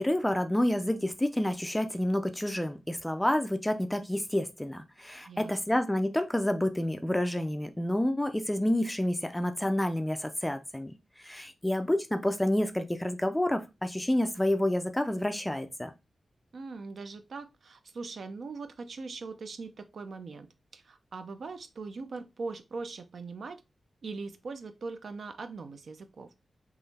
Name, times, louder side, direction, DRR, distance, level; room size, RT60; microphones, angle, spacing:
voice 1, 0.0-15.9, left 1 dB, 5° left, 0.4 m, -29 dB
voice 2, 5.3-5.8 16.5-20.5 20.7-23.6 24.0-26.3, right 4 dB, 60° right, 0.6 m, -41 dB
3.9 x 3.0 x 4.1 m
wide cardioid pair, 160°, 0 cm